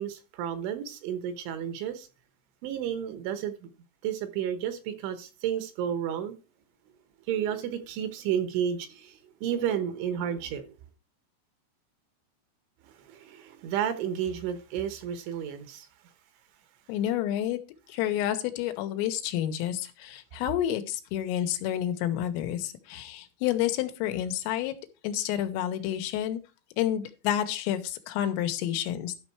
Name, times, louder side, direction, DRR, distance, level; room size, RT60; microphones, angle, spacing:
voice 1, 0.0-2.1 2.6-3.7 4.0-6.4 7.3-10.6 12.8-15.9, right 9 dB, 75° right, 3.3 m, -32 dB
voice 2, 16.9-17.6 17.9-24.8 25.0-26.4 26.8-29.2, left 11 dB, 90° left, 3.6 m, -29 dB
12.5 x 5.5 x 4.6 m
omnidirectional pair, 5.8 m